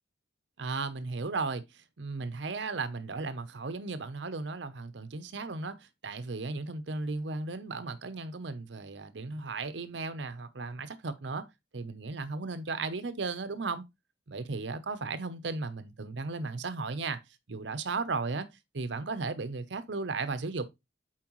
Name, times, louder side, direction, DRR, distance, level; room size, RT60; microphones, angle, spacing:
voice 1, 0.6-11.5 11.7-13.8 14.3-17.2 17.5-18.5 18.7-20.7, right 3 dB, 75° right, 0.7 m, -35 dB
7.5 x 4.5 x 3.0 m
head